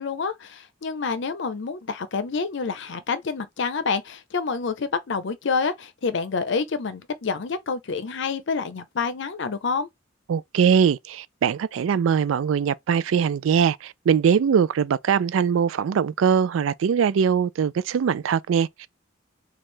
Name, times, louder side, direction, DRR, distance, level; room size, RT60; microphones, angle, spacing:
voice 1, 0.0-9.9, left 5 dB, 65° left, 0.6 m, -28 dB
voice 2, 10.3-18.9, right 7 dB, 90° right, 0.3 m, -21 dB
3.2 x 2.4 x 4.3 m
head